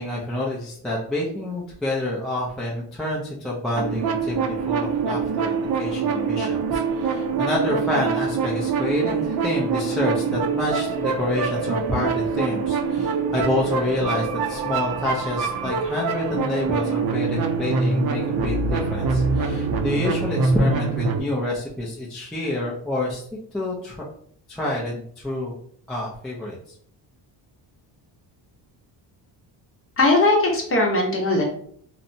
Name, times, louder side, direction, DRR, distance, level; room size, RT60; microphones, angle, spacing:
voice 1, 0.0-23.2 23.5-24.1 24.5-25.5 25.9-26.6, left 1 dB, ahead, -5 dB, 0.4 m, -28 dB
sound 1, 3.8-21.2, right 4 dB, 55° right, 0.5 m, -24 dB
voice 2, 30.0-31.4, left 2 dB, 30° left, 0 dB, 0.7 m, -19 dB
2.7 x 2.1 x 2.6 m, 0.62 s
cardioid pair, 115°, 45 cm